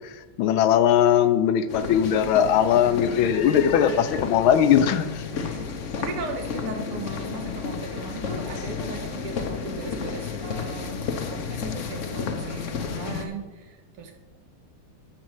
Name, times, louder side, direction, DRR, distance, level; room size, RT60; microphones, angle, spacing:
voice 1, 0.4-5.2, left 9 dB, 75° left, 11 dB, 1.4 m, -20 dB
sound 1, 1.7-13.2, left 5 dB, 55° left, 0.8 m, -32 dB
voice 2, 2.7-3.3 5.3-11.0 11.3-14.2, right 4 dB, 85° right, 4 dB, 2.2 m, -38 dB
12.5 x 4.6 x 8.0 m, 1.3 s
omnidirectional pair, 2.4 m